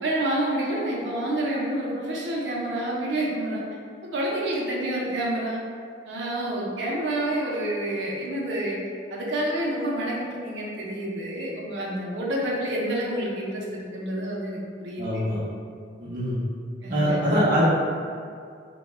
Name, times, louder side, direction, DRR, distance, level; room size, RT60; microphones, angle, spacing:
voice 1, 0.0-3.6 4.0-5.6 6.1-8.8 9.1-15.2 16.8-17.3, right 1 dB, 90° right, -3 dB, 0.5 m, -28 dB
voice 2, 15.0-15.4 16.0-16.4 16.9-17.6, equal, 50° right, -9 dB, 0.6 m, -23 dB
2.2 x 2.0 x 3.2 m, 2.3 s
head